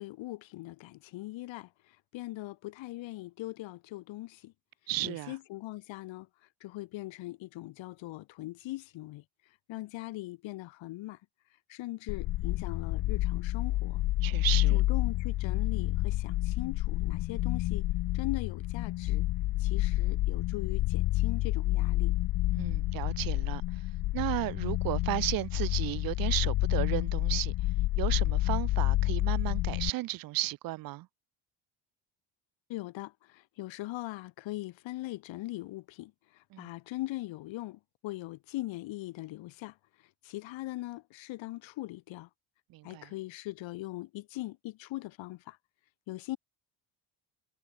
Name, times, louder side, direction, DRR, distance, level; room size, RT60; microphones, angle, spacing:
voice 1, 0.0-4.5 5.0-6.3 6.6-9.2 9.7-11.2 11.7-14.0 14.7-17.9 18.1-19.2 19.6-22.1 32.7-39.8 40.2-42.3 42.8-45.6 46.1-46.4, left 18 dB, 75° left, 3.6 m, -40 dB
voice 2, 4.9-5.3 14.2-14.8 22.5-23.6 24.1-27.5 28.0-31.1 36.5-36.7 42.7-43.1, right 18 dB, 50° right, 0.5 m, -34 dB
sound 1, 12.1-29.9, left 17 dB, 50° left, 0.7 m, -29 dB
cardioid pair, 140°, 46 cm